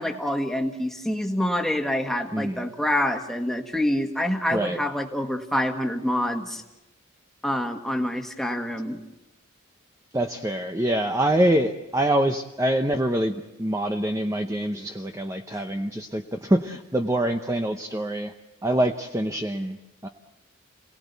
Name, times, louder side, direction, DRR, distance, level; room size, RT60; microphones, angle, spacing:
voice 1, 0.0-6.6 7.4-9.0, left 1 dB, ahead, 4 dB, 1.6 m, -26 dB
voice 2, 2.3-2.7 4.5-4.8 10.1-18.3 18.6-19.8 20.0-20.1, right 1 dB, 15° right, 5 dB, 0.8 m, -25 dB
28.0 x 18.5 x 8.2 m, 1.0 s
head